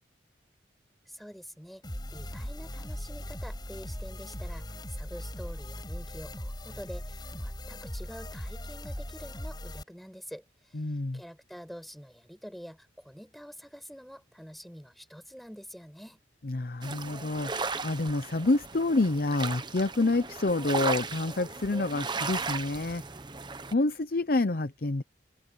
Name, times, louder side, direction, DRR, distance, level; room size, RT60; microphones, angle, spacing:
voice 1, 1.1-1.8 2.1-10.8 11.1-16.2, equal, ahead, 6.3 m, -47 dB
sound 1, 1.8-9.8, equal, 20° left, 6.6 m, -39 dB
voice 2, 10.7-11.2 16.4-23.0 23.7-25.0, left 2 dB, 50° left, 0.7 m, -28 dB
sound 2, 16.8-23.7, right 4 dB, 25° right, 0.9 m, -36 dB
head